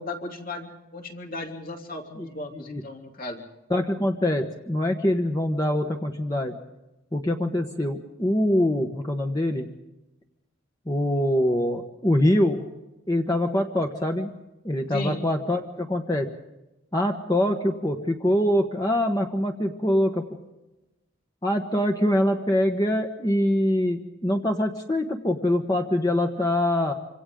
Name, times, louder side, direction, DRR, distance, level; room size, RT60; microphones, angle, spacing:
voice 1, 0.0-3.5 14.9-15.2, left 2 dB, 45° left, 2 dB, 3.1 m, -35 dB
voice 2, 3.7-6.5 7.1-9.7 10.9-12.6 13.1-14.3 14.6-16.3 16.9-20.2 21.4-26.9, left 1 dB, 20° left, 2 dB, 1.2 m, -24 dB
27.0 x 26.0 x 3.8 m, 0.99 s
head